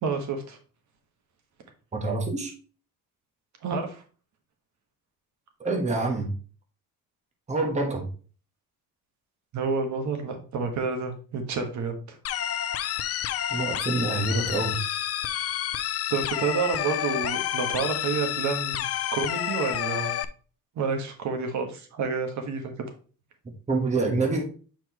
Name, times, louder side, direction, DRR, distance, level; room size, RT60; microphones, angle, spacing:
voice 1, 0.0-0.6 3.6-4.0 9.5-12.2 16.1-18.9 19.1-20.2 20.7-22.7, right 5 dB, 60° right, 1.4 m, -29 dB
voice 2, 1.9-2.5 5.6-6.3 7.5-8.1 13.5-14.8 23.7-24.4, right 3 dB, 20° right, 1.3 m, -26 dB
sound 1, 12.2-20.2, left 11 dB, 45° left, 0.5 m, -29 dB
7.7 x 4.5 x 3.0 m
cardioid pair, 145°, 33 cm